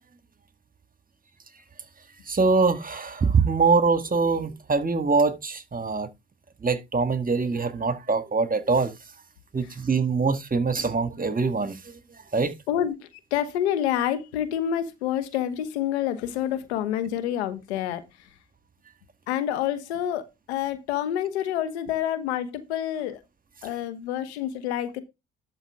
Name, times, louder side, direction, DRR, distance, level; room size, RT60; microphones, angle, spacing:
voice 1, 2.3-6.1 6.6-8.9 9.5-12.0 12.3-12.5, right 4 dB, 25° right, 1.8 m, -23 dB
voice 2, 12.7-18.3 19.3-23.2 23.6-25.0, left 10 dB, 90° left, 1.2 m, -28 dB
12.0 x 5.2 x 3.6 m
hypercardioid pair, 55°, 32 cm